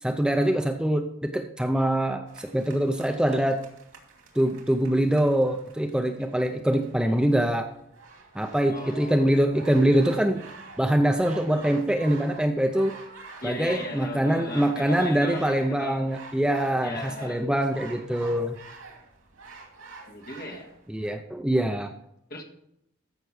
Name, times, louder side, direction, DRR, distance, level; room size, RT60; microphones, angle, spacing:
voice 1, 0.0-3.6 4.4-7.7 8.3-10.4 10.8-13.0 13.4-18.6 20.9-21.9, right 1 dB, 5° right, 0.5 m, -24 dB
sound 1, 2.3-21.1, right 4 dB, 90° right, 2.7 m, -48 dB
voice 2, 8.7-9.7 13.4-16.1 16.8-17.5 20.1-20.7 22.3-22.4, left 2 dB, 45° left, 1.8 m, -38 dB
14.5 x 6.0 x 4.8 m
head